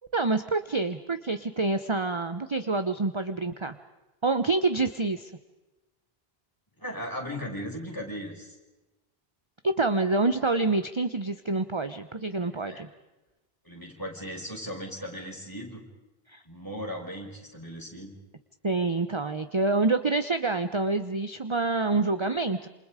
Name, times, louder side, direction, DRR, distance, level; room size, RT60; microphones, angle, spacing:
voice 1, 0.1-3.8 4.2-5.3 9.6-12.9 16.3-16.4 18.6-22.7, right 3 dB, 30° right, 10 dB, 0.9 m, -27 dB
voice 2, 6.8-8.6 12.7-12.8 13.6-15.8 16.5-18.2, equal, 20° left, -1 dB, 5.8 m, -37 dB
28.0 x 28.0 x 5.0 m, 1.1 s
omnidirectional pair, 1.0 m